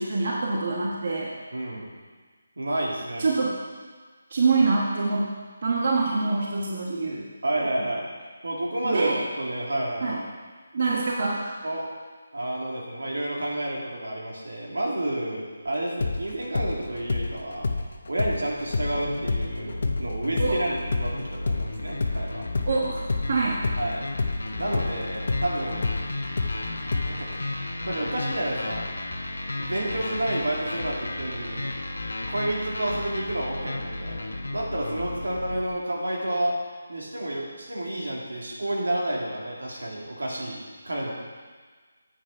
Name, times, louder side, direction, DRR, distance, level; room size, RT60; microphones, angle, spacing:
voice 1, 0.0-1.3 3.2-3.6 4.3-5.3 5.6-7.3 8.8-9.3 10.0-10.2 10.7-11.5 20.4-20.6 22.6-23.7, right 3 dB, 50° right, -3 dB, 1.3 m, -25 dB
voice 2, 1.5-1.9 2.6-3.3 7.4-8.1 8.4-9.1 9.4-10.2 11.6-11.8 12.3-17.7 18.1-22.4 23.8-24.1 24.6-25.9 26.8-27.5 27.8-28.9 29.6-31.7 32.3-36.5 36.9-41.1, right 1 dB, 90° right, -3 dB, 2.5 m, -30 dB
sound 1, 16.0-23.9 24.2-27.4, left 3 dB, 60° left, 0.8 m, -29 dB
sound 2, 18.9-35.7, left 2 dB, 90° left, 1.2 m, -34 dB
8.5 x 6.4 x 5.5 m, 1.5 s
figure-of-eight pair, 165°, 0 cm